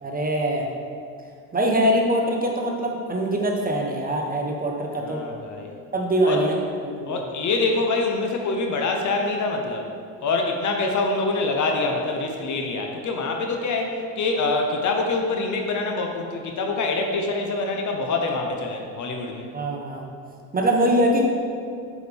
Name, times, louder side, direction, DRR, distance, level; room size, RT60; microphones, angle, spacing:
voice 1, 0.0-0.7 1.5-5.2 5.9-7.2 19.5-20.0 20.5-21.2, right 1 dB, 20° right, 0 dB, 1.1 m, -23 dB
voice 2, 5.0-5.7 6.2-6.4 7.1-9.9 10.2-19.5, left 3 dB, 50° left, 3 dB, 0.9 m, -25 dB
7.7 x 4.9 x 3.5 m, 2.4 s
supercardioid pair, 80°, 39 cm